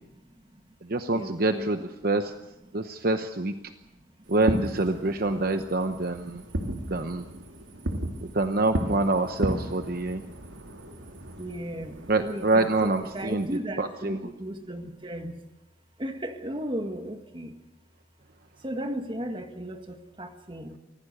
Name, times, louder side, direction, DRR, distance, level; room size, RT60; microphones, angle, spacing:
voice 1, 0.0-0.7 1.1-1.9 3.8-4.3 5.0-7.2 7.5-8.0 9.9-11.0 11.4-15.4 16.0-17.6 18.6-20.8, equal, 25° right, 6 dB, 1.6 m, -37 dB
voice 2, 0.9-2.3 2.7-3.5 4.3-6.4 6.7-7.2 8.3-10.2 12.1-13.5 13.8-14.2, right 2 dB, 50° right, 8 dB, 0.9 m, -26 dB
Fireworks, 4.3-13.6, right 1 dB, 85° right, 2.5 m, -35 dB
24.5 x 16.5 x 6.7 m, 0.95 s
head